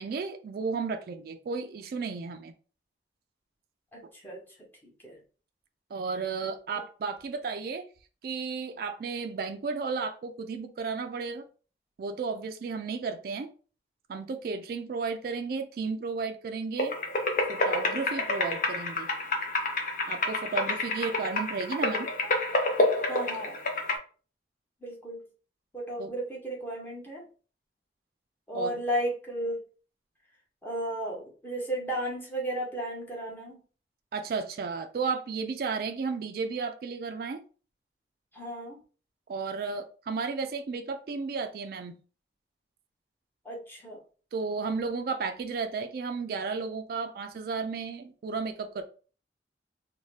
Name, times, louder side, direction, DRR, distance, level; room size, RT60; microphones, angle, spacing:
voice 1, 0.0-2.5 5.9-7.8 8.2-11.4 12.0-13.5 14.1-16.9 17.5-19.1 20.1-22.1 26.0-26.1 28.5-28.8 34.1-37.4 39.3-42.0 44.3-48.8, right 4 dB, 55° right, 6 dB, 0.3 m, -33 dB
voice 2, 3.9-4.4 4.8-5.2 23.1-23.6 24.8-25.2 25.7-27.2 28.5-29.6 30.6-33.6 38.3-38.8 43.4-44.0, right 1 dB, 10° left, -3 dB, 0.8 m, -34 dB
sound 1, 16.8-24.0, left 2 dB, 45° left, 0.6 m, -29 dB
2.7 x 2.1 x 3.1 m, 0.38 s
head